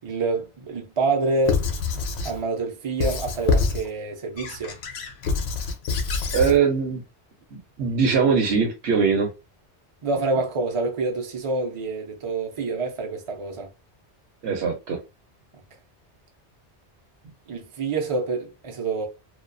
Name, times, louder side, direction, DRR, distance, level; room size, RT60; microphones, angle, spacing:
voice 1, 0.0-1.6 2.2-4.8 10.0-13.7 17.5-19.1, right 3 dB, 45° right, 0.4 m, -27 dB
Squeak / Writing, 1.4-2.4 3.0-3.9 4.4-6.6, left 4 dB, 70° left, 0.8 m, -26 dB
voice 2, 6.3-7.0 7.5-9.3 14.4-15.0, right 5 dB, 65° right, 0.8 m, -21 dB
2.3 x 2.2 x 2.4 m
omnidirectional pair, 1.2 m